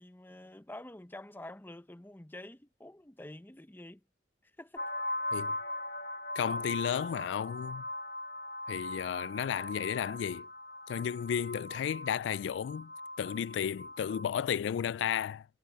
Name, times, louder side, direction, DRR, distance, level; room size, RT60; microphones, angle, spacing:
voice 1, 0.0-4.0 4.6-4.9, left 1 dB, 10° left, 0.8 m, -48 dB
sound 1, 4.8-14.2, left 1 dB, 65° left, 1.9 m, -40 dB
voice 2, 6.4-7.8 8.7-10.5 10.9-12.9 13.2-15.5, left 8 dB, 85° left, 0.3 m, -33 dB
head